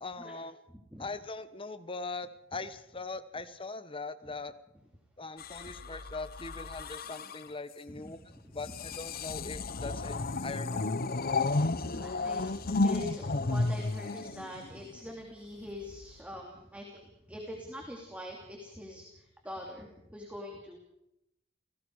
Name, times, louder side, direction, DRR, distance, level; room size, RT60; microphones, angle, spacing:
voice 1, 0.0-0.5 1.0-4.5 5.2-8.2 8.5-10.9, left 3 dB, 25° left, 11 dB, 1.2 m, -41 dB
voice 2, 0.7-1.1 4.2-4.3 7.9-8.1 8.4-8.7 9.3-9.6 11.7-20.8, left 1 dB, 5° right, 0 dB, 2.9 m, -44 dB
sound 1, 5.4-7.5 8.6-15.0 15.9-16.2, left 3 dB, 50° left, 0.9 m, -33 dB
29.5 x 18.5 x 4.8 m, 0.82 s
head